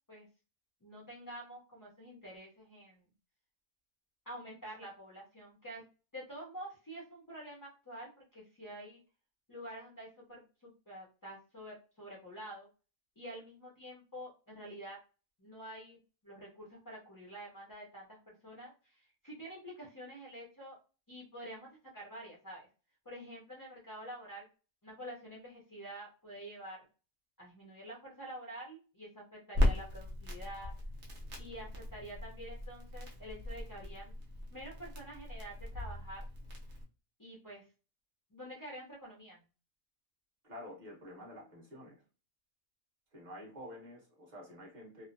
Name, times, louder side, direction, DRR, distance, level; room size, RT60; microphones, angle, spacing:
voice 1, 0.8-3.0 4.3-5.8 6.1-9.0 9.5-12.7 13.2-15.0 15.4-16.0 16.2-20.8 21.1-22.7 23.0-24.4 24.8-26.8 27.4-30.7 31.4-34.1 34.5-36.2 37.2-37.7 38.3-39.4, right 1 dB, 30° left, -4 dB, 0.3 m, -48 dB
Crackle, 29.5-36.8, left 1 dB, 55° right, 1.0 m, -37 dB
voice 2, 40.4-42.0 43.1-45.1, left 1 dB, 35° right, -2 dB, 1.2 m, -49 dB
3.0 x 2.0 x 2.5 m, 0.34 s
omnidirectional pair, 1.5 m